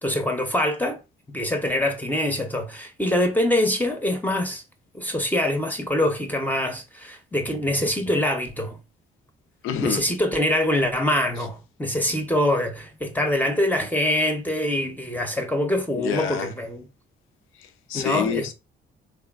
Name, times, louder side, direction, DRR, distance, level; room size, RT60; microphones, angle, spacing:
voice 1, 0.0-1.0 1.3-4.6 4.9-8.8 9.8-16.8 17.9-18.5, left 1 dB, 10° left, 0.5 m, -24 dB
voice 2, 9.6-10.0 11.4-11.5 16.0-16.5 17.6-18.5, left 8 dB, 90° left, 0.4 m, -28 dB
3.1 x 2.3 x 2.2 m
cardioid pair, 90°, 20 cm